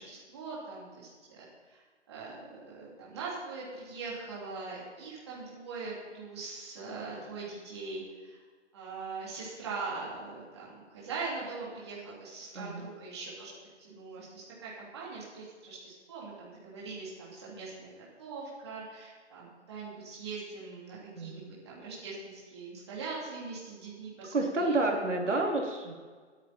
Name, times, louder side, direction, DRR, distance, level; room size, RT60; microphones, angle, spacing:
voice 1, 0.0-8.4 8.7-13.5 13.8-17.9 18.2-24.8, right 4 dB, 20° right, -7 dB, 3.2 m, -42 dB
voice 2, 12.5-12.9 21.1-21.4 24.3-25.9, right 2 dB, 80° right, 0 dB, 3.1 m, -29 dB
21.0 x 9.2 x 4.3 m, 1.5 s
hypercardioid pair, 180°, 36 cm